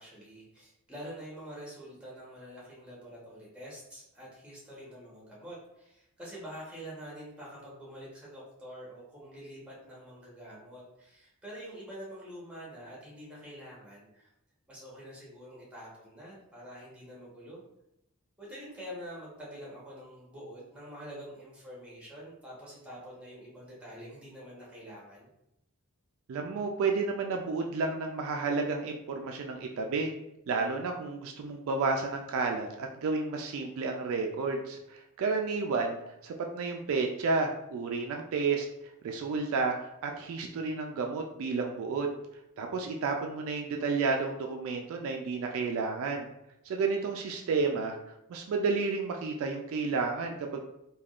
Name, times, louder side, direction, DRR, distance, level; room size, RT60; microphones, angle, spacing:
voice 1, 0.0-14.3 14.7-17.6 18.4-25.3, equal, 5° right, -6 dB, 0.9 m, -46 dB
voice 2, 26.3-30.1 30.5-36.0 36.2-38.7 39.0-39.8 40.0-42.1 42.6-46.3 46.7-50.6, right 4 dB, 65° right, 2 dB, 0.3 m, -31 dB
3.4 x 2.3 x 2.4 m, 0.84 s
head